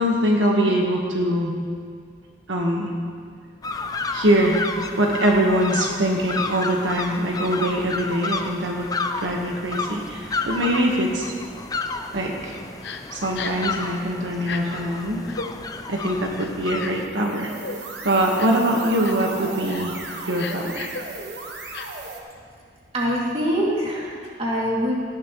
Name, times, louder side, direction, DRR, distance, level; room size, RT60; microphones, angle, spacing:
voice 1, 0.0-1.6 2.5-2.9 4.1-4.6 5.0-8.9 9.2-11.3 12.1-12.5 13.1-15.2 15.9-17.5 18.0-19.9 20.3-20.9, right 1 dB, 85° right, 0 dB, 1.3 m, -23 dB
sound 1, 3.6-17.1, left 3 dB, 20° left, 0.5 m, -31 dB
Crying sobbing, 12.8-13.0 13.3-13.7 14.4-14.6 15.2-15.5 16.4-17.1 17.6-17.8 18.4-18.6 19.0-19.3 19.7-19.9 20.3-21.0 21.7-21.9, left 5 dB, 65° left, 0.8 m, -34 dB
sound 2, 16.9-22.2, right 3 dB, 60° right, 1.3 m, -36 dB
voice 2, 22.9-25.0, equal, 30° right, -5 dB, 2.4 m, -24 dB
17.5 x 11.5 x 3.1 m, 2.1 s
head